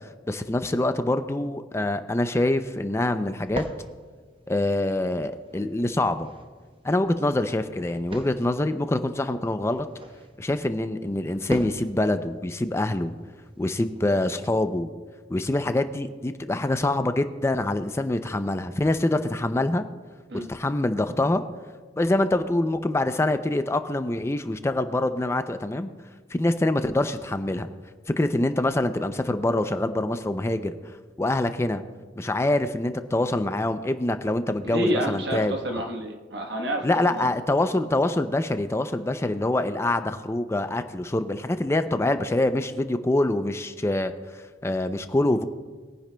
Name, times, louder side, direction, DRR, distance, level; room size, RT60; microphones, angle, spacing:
voice 1, 0.3-3.6 4.5-6.3 6.8-9.9 10.4-13.1 13.6-14.9 15.3-19.8 20.5-21.4 22.0-25.9 26.3-27.7 28.1-30.8 31.2-31.8 32.2-35.5 36.8-44.1 44.6-45.4, left 1 dB, 15° left, 9 dB, 0.4 m, -25 dB
sound 1, 2.1-14.5, right 1 dB, 30° right, 0.9 m, -42 dB
voice 2, 34.6-37.4, equal, 70° right, 3 dB, 1.3 m, -29 dB
21.0 x 10.0 x 2.2 m, 1.5 s
head